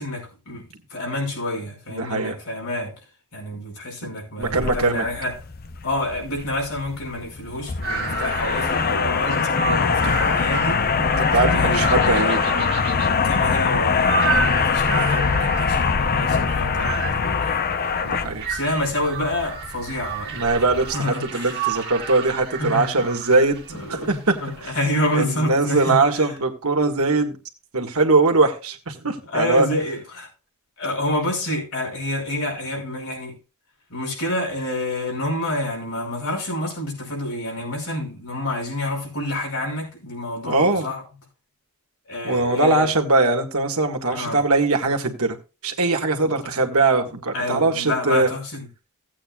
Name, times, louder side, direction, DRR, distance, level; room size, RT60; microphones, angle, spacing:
voice 1, 0.0-2.9 3.3-5.4 5.8-10.8 11.3-11.9 13.2-17.7 18.5-20.4 20.9-21.9 22.6-23.1 23.7-26.3 29.3-30.3 30.8-33.3 33.9-41.0 42.1-42.9 44.1-44.4 46.2-46.4 47.3-48.7, left 1 dB, 70° left, 5.5 m, -28 dB
voice 2, 1.9-2.4 4.4-5.1 11.0-12.7 18.0-18.5 20.3-23.6 23.9-24.4 24.6-24.7 25.1-27.4 27.7-29.7 40.5-40.9 42.2-45.4 45.6-48.3, right 3 dB, 75° right, 1.8 m, -21 dB
sound 1, 4.4-21.0, left 5 dB, 45° left, 0.7 m, -23 dB
sound 2, 7.8-25.3, right 5 dB, 50° right, 2.1 m, -32 dB
17.0 x 8.6 x 2.4 m
head